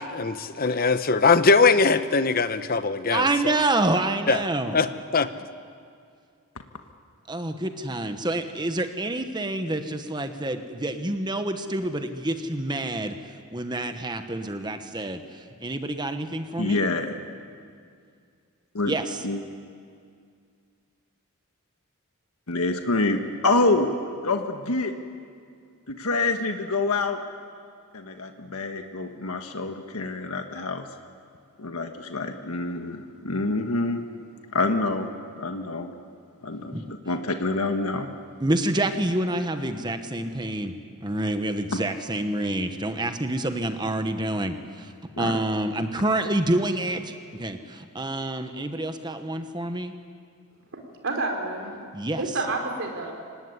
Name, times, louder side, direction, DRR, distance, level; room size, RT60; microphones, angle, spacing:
voice 1, 0.0-3.6 4.3-4.4 4.7-5.3, left 4 dB, 40° left, 11 dB, 0.9 m, -21 dB
voice 2, 3.1-4.8 7.3-13.1 13.5-16.8 18.8-19.2 36.7-36.8 38.4-40.7 41.0-44.9 45.2-49.9 51.9-52.2, right 1 dB, 20° right, 7 dB, 1.2 m, -27 dB
voice 3, 16.6-17.2 18.7-18.9 19.2-19.4 22.5-23.9 24.2-24.9 25.9-27.2 27.9-30.8 31.6-34.0 34.5-35.1 35.4-35.9 36.4-38.1 41.7-41.8 45.2-45.4, left 2 dB, 80° left, 5 dB, 1.5 m, -26 dB
voice 4, 50.7-51.8 52.2-53.1, right 2 dB, 60° right, 2 dB, 4.1 m, -29 dB
25.0 x 19.0 x 9.7 m, 2.3 s
head